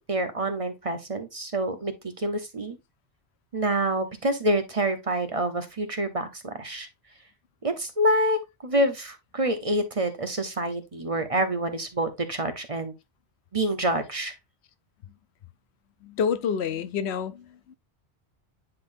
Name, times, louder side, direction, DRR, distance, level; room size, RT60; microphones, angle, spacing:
voice 1, 0.0-2.8 3.5-6.9 7.6-12.9 13.5-14.3, right 1 dB, 35° right, 0.9 m, -27 dB
voice 2, 16.0-17.7, left 7 dB, 80° left, 0.9 m, -28 dB
9.8 x 3.9 x 2.6 m
omnidirectional pair, 1.1 m